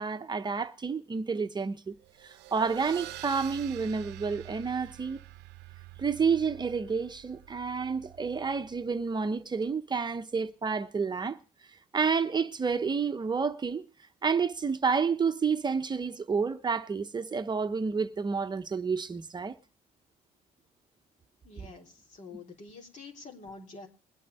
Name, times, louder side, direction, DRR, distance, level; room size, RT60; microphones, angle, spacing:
voice 1, 0.0-5.2 6.0-11.4 11.9-13.8 14.2-19.6, right 5 dB, 25° right, 1.0 m, -30 dB
sound 1, 2.0-9.1, right 15 dB, 85° right, 0.8 m, -47 dB
voice 2, 21.4-23.9, left 3 dB, 45° left, 3.7 m, -47 dB
21.5 x 8.6 x 4.2 m
cardioid pair, 110°, 17 cm